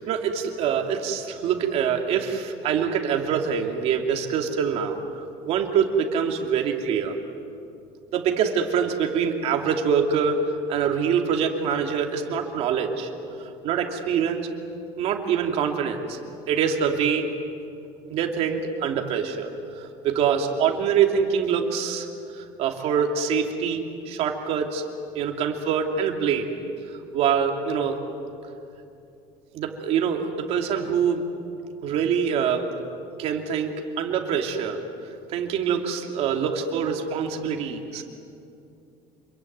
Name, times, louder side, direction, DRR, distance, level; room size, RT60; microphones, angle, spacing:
voice 1, 0.0-5.0 5.4-7.2 8.1-13.1 13.4-14.5 15.0-16.2 16.5-17.3 18.1-19.5 19.7-22.1 22.3-24.8 25.1-26.5 26.9-28.0 29.5-31.2 31.8-32.7 33.2-34.8 35.3-38.0, right 7 dB, 55° right, 3 dB, 2.8 m, -25 dB
27.0 x 23.0 x 9.4 m, 2.6 s
cardioid pair, 170°, 13 cm